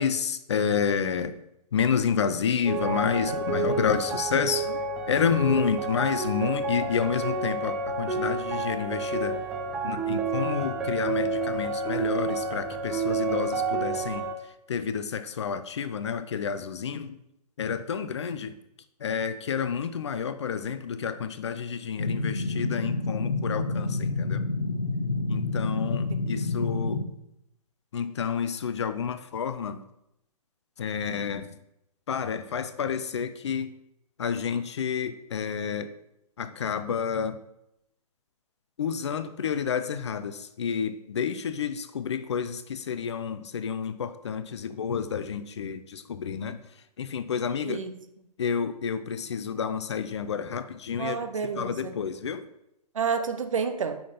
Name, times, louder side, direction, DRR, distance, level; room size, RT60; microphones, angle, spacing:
voice 1, 0.0-1.4 1.7-4.7 5.1-9.4 9.8-14.3 14.7-17.1 17.6-18.5 19.0-24.4 25.3-27.0 27.9-29.8 30.8-31.5 32.1-33.7 34.2-35.9 36.4-37.4 38.8-46.6 47.0-47.8 48.4-51.2 51.6-52.4, left 7 dB, 45° left, 12 dB, 0.6 m, -29 dB
sound 1, 2.7-14.3, right 3 dB, 5° right, 0.3 m, -29 dB
sound 2, 22.0-27.0, left 3 dB, 80° left, 1.1 m, -28 dB
voice 2, 25.7-26.2 47.6-48.0 51.0-51.9 52.9-54.0, right 6 dB, 55° right, 9 dB, 0.9 m, -30 dB
7.5 x 6.0 x 5.3 m, 0.82 s
figure-of-eight pair, 130°, 20 cm